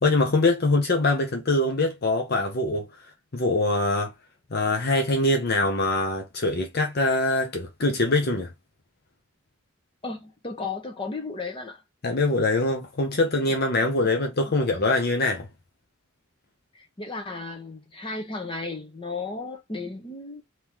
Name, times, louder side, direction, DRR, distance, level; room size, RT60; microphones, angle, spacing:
voice 1, 0.0-2.9 3.3-4.1 4.5-8.5 12.0-15.5, left 2 dB, 50° left, 0.8 m, -23 dB
voice 2, 10.0-11.8 14.0-14.1 14.4-14.5 16.7-20.4, left 3 dB, 25° left, 1.0 m, -34 dB
3.6 x 3.0 x 3.0 m
head